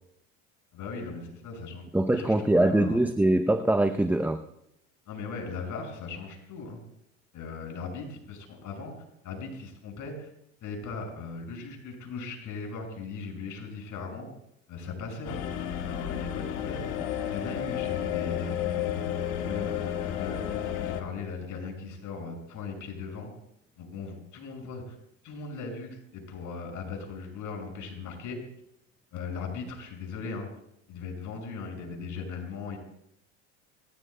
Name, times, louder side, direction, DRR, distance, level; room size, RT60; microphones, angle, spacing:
voice 1, 0.7-1.8 2.1-3.0 5.1-6.8 7.3-8.9 9.2-10.3 10.6-14.3 14.7-15.5 15.9-16.9 17.3-18.9 19.3-23.3 23.8-24.9 25.2-28.4 29.1-30.5 30.9-32.8, left 4 dB, 50° left, 1 dB, 6.2 m, -38 dB
voice 2, 1.9-4.4, right 1 dB, 5° right, 8 dB, 0.6 m, -23 dB
sound 1, 15.2-21.0, left 10 dB, 70° left, 1.7 m, -32 dB
25.5 x 16.5 x 2.2 m, 0.78 s
hypercardioid pair, 80°, 39 cm